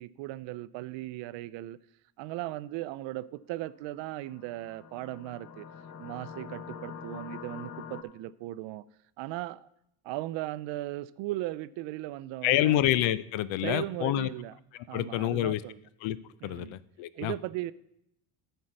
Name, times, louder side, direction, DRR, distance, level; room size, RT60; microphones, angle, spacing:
voice 1, 0.0-1.8 2.2-5.7 6.0-8.8 9.2-9.7 10.0-12.8 13.6-14.5 14.9-15.8 16.4-16.8 17.2-17.7, right 16 dB, 70° right, 17 dB, 0.5 m, -37 dB
sound 1, 4.0-8.0, left 7 dB, 35° left, 0.8 m, -44 dB
voice 2, 12.4-14.3 14.9-15.6 16.0-16.2 16.4-17.3, left 13 dB, 75° left, 17 dB, 0.6 m, -27 dB
12.5 x 4.6 x 6.5 m, 0.78 s
cardioid pair, 135°, 47 cm